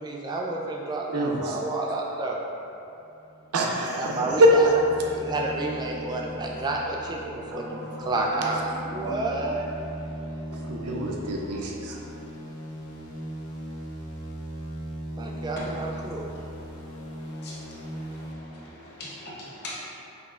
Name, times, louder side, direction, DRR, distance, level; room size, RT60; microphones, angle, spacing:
voice 1, 0.0-2.4 4.0-4.8 5.2-9.7 15.2-16.3, right 2 dB, 20° right, -1 dB, 0.3 m, -30 dB
voice 2, 1.1-1.6 3.5-4.5 7.5-8.5 9.0-9.2 10.5-12.0, right 1 dB, 75° right, -1 dB, 0.5 m, -25 dB
sound 1, 3.2-18.3, equal, 80° left, 0.6 m, -39 dB
voice 3, 15.6-15.9 17.0-19.8, left 1 dB, 45° left, -6 dB, 0.9 m, -42 dB
5.2 x 3.0 x 2.4 m, 2.8 s
head